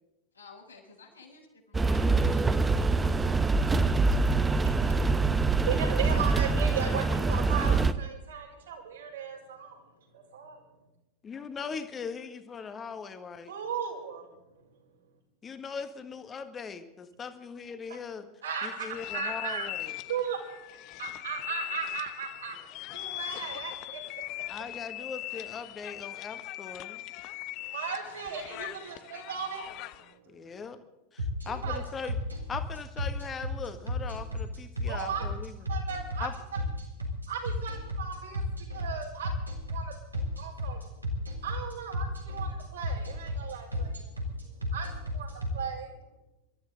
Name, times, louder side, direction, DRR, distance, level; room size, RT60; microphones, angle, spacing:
voice 1, 0.3-2.4, left 4 dB, 85° left, -5 dB, 5.2 m, -52 dB
sound 1, 1.7-7.9, right 3 dB, 10° right, 0.8 m, -25 dB
voice 2, 3.5-3.9 11.2-13.5 15.4-18.3 18.6-19.9 24.5-27.0 30.3-30.8 31.1-32.1 32.5-35.5 36.2-36.3, left 5 dB, 20° left, 9 dB, 1.5 m, -40 dB
voice 3, 4.6-9.8 10.1-10.6 13.5-14.3 18.4-19.7 20.1-20.4 21.0-22.6 22.9-24.0 27.6-30.5 31.4-31.8 34.9-35.3 35.7-36.3 37.3-39.3 39.7-39.9 40.4-40.8 41.4-44.1 44.7-45.9, right 7 dB, 65° right, -1 dB, 4.7 m, -36 dB
sound 2, 18.9-30.1, left 16 dB, 40° left, 0.6 m, -40 dB
sound 3, 31.2-45.5, left 1 dB, 85° right, 3.6 m, -32 dB
26.5 x 13.0 x 4.0 m, 0.98 s
figure-of-eight pair, 90°, 0 cm